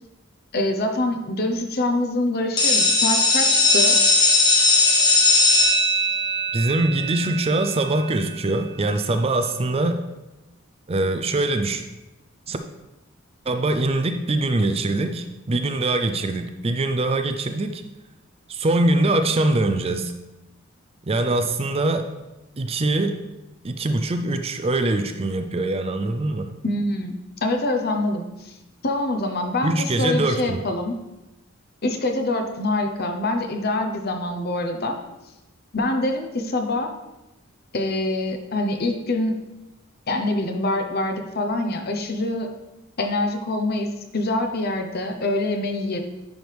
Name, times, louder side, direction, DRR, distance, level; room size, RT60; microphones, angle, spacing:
voice 1, 0.5-4.0 26.6-28.6 28.8-30.9 31.8-35.0 35.7-36.9 37.7-39.3 40.1-42.5 43.0-46.0, left 2 dB, 50° left, 4 dB, 0.9 m, -25 dB
sound 1, 2.6-8.2, left 2 dB, 20° left, 1.2 m, -19 dB
voice 2, 6.5-10.0 10.9-11.8 12.5-12.6 13.5-17.8 18.5-20.1 21.0-22.1 22.6-23.2 23.6-26.5 29.6-30.6, right 2 dB, 30° right, 8 dB, 0.4 m, -23 dB
10.5 x 4.8 x 3.4 m, 0.99 s
head